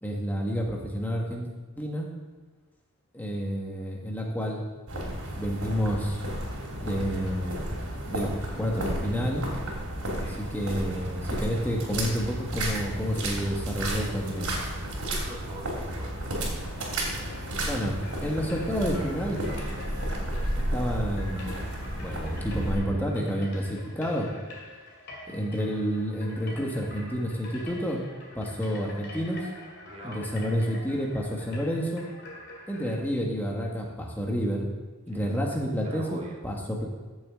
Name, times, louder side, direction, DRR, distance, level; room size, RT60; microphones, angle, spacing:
voice 1, 0.0-1.5 1.8-2.1 3.1-4.6 4.9-6.2 6.8-7.6 8.1-9.4 10.2-14.5 17.7-19.4 20.7-21.5 22.0-24.3 25.3-28.0 28.3-29.5 30.0-32.0 32.7-34.7 35.1-36.9, equal, 10° left, -2 dB, 1.5 m, -29 dB
sound 1, 4.9-22.8, right 1 dB, 85° right, 3.1 m, -32 dB
voice 2, 15.1-16.1 29.9-30.3 35.1-36.4, right 1 dB, 30° right, -2 dB, 1.8 m, -44 dB
sound 2, 16.5-33.0, left 2 dB, 50° left, 2.5 m, -46 dB
15.0 x 7.2 x 3.7 m, 1.4 s
head